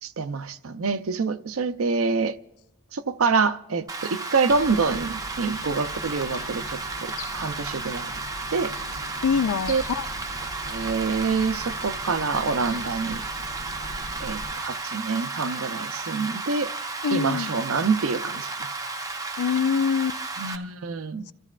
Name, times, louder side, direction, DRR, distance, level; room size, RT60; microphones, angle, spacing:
voice 1, 0.0-2.4 2.9-8.1 8.5-8.7 9.7-9.8 10.7-13.2 14.2-16.7 17.1-18.5 20.4-21.3, right 4 dB, 65° right, 0.6 m, -26 dB
Rain, 3.9-20.5, right 3 dB, 15° right, 0.7 m, -33 dB
sound 1, 4.5-14.5, left 1 dB, 70° left, 1.2 m, -41 dB
voice 2, 9.2-10.1 17.0-17.5 19.4-20.2, left 6 dB, 85° left, 0.4 m, -24 dB
29.0 x 14.5 x 2.4 m
head